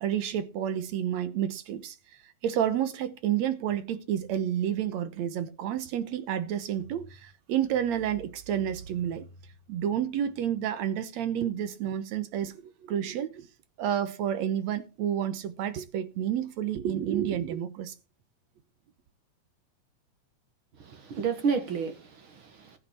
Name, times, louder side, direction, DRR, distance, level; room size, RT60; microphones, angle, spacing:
voice 1, 0.0-9.3 9.7-13.5 13.8-17.9, right 10 dB, 70° right, 2.1 m, -30 dB
voice 2, 20.7-22.8, right 6 dB, 50° right, 2.0 m, -31 dB
14.5 x 9.7 x 4.4 m
omnidirectional pair, 3.5 m